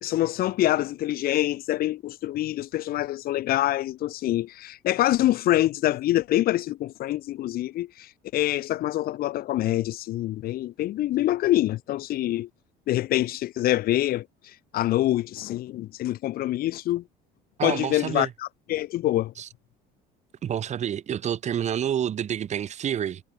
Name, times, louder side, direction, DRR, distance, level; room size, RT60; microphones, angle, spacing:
voice 1, 0.0-12.5 12.9-14.3 14.7-17.0 17.6-18.3 18.7-19.3, left 14 dB, 60° left, 2.4 m, -25 dB
voice 2, 17.6-18.3 19.4-19.5 20.4-23.2, right 9 dB, 40° right, 2.1 m, -28 dB
cardioid pair, 115°, 17 cm